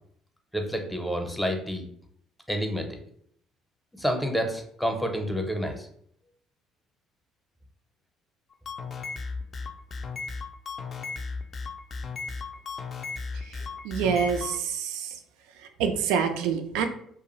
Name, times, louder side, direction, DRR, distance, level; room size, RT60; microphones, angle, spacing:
voice 1, 0.5-1.8 2.5-3.0 3.9-5.9, equal, 5° left, 3 dB, 0.7 m, -29 dB
sound 1, 8.5-14.6, left 4 dB, 40° left, 0.3 m, -35 dB
voice 2, 13.3-15.2 15.6-16.8, right 7 dB, 70° right, 6 dB, 0.3 m, -27 dB
2.4 x 2.2 x 3.0 m, 0.66 s
hypercardioid pair, 55°, 0 cm